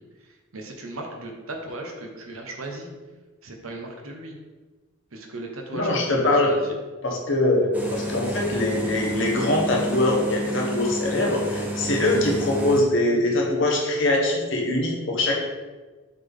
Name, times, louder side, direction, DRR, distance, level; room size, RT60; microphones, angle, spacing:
voice 1, 0.5-2.9 3.4-4.4 5.1-6.7 12.1-12.4, right 2 dB, 75° right, 2 dB, 1.0 m, -36 dB
voice 2, 5.7-6.5 7.0-15.3, left 1 dB, 55° left, -1 dB, 1.2 m, -23 dB
sound 1, 7.7-12.8, equal, 5° right, 0.6 m, -30 dB
6.6 x 4.0 x 3.6 m, 1.3 s
head